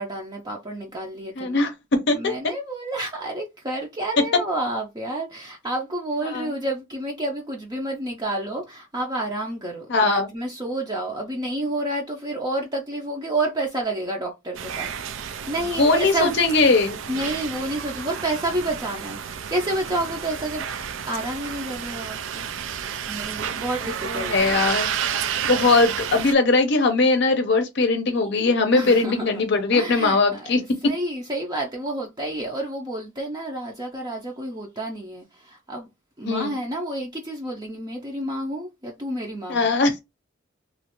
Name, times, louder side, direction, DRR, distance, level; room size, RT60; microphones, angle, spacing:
voice 1, 0.0-1.7 2.1-16.3 17.1-20.7 21.1-22.5 23.1-24.7 28.7-29.3 29.7-35.9 36.2-39.7, right 1 dB, 20° right, 0.5 m, -29 dB
voice 2, 1.4-2.3 6.3-6.5 9.9-10.3 15.8-17.0 24.0-24.9 25.5-30.9 36.2-36.5 39.5-40.0, left 3 dB, 60° left, 0.6 m, -20 dB
sound 1, 14.5-26.3, right 8 dB, 70° right, 0.4 m, -31 dB
3.0 x 2.4 x 3.0 m
head